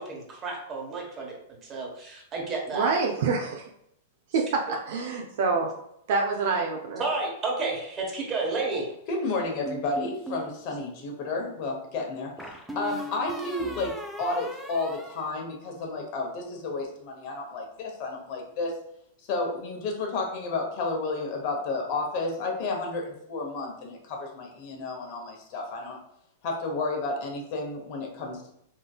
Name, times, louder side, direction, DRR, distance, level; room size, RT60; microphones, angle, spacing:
voice 1, 0.0-1.3 1.7-3.0 7.0-8.9, right 3 dB, 30° right, -1 dB, 1.1 m, -31 dB
voice 2, 2.7-3.6 4.3-5.7 6.1-7.0, right 4 dB, 60° right, 1 dB, 0.5 m, -26 dB
voice 3, 9.1-18.8 19.3-26.0 26.4-28.5, left 3 dB, 50° left, 1 dB, 0.9 m, -31 dB
sound 1, 9.7-10.5 12.4-16.0, equal, ahead, 0.5 m, -39 dB
3.7 x 2.6 x 2.3 m, 0.74 s
hypercardioid pair, 105°, 0 cm